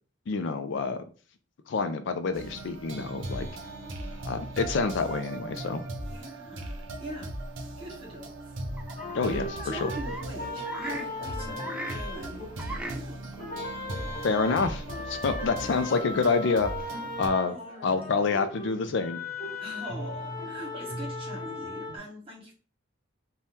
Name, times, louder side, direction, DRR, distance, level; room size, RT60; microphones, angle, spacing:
voice 1, 0.3-1.0 1.7-3.5 4.2-5.8 9.1-9.9 14.2-16.7 17.2-17.5 17.8-19.2, left 4 dB, 65° left, 9 dB, 0.4 m, -27 dB
sound 1, 2.3-17.3, right 1 dB, 85° right, 0.6 m, -38 dB
voice 2, 6.1-7.4 7.8-8.5 9.2-13.2 17.5-18.2 19.6-22.5, right 1 dB, 30° right, -3 dB, 1.2 m, -42 dB
sound 2, 7.1-7.2 8.8-10.3 10.6-12.0 12.6-13.0 13.3-13.4 14.5-14.6 15.5-17.0, right 1 dB, 5° right, 0.4 m, -39 dB
sound 3, 9.0-13.0 13.4-22.0, left 2 dB, 40° left, 1.4 m, -38 dB
2.7 x 2.3 x 3.4 m, 0.38 s
head